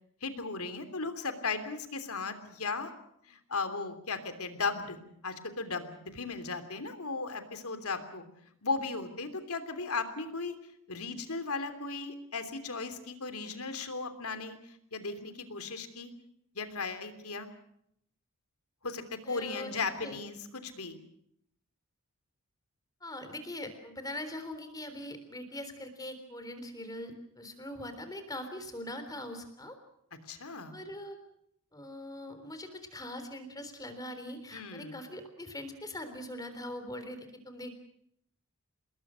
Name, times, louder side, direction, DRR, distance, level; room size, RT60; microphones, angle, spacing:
voice 1, 0.2-2.9 3.2-8.2 8.6-10.5 10.9-16.1 16.5-17.5 18.8-21.0 30.2-30.7 34.5-35.0, left 4 dB, 80° left, 10 dB, 3.2 m, -36 dB
voice 2, 19.3-20.2 23.0-29.8 30.7-31.2 31.7-37.8, left 1 dB, 15° left, 9 dB, 3.6 m, -42 dB
27.5 x 21.0 x 6.3 m, 0.72 s
head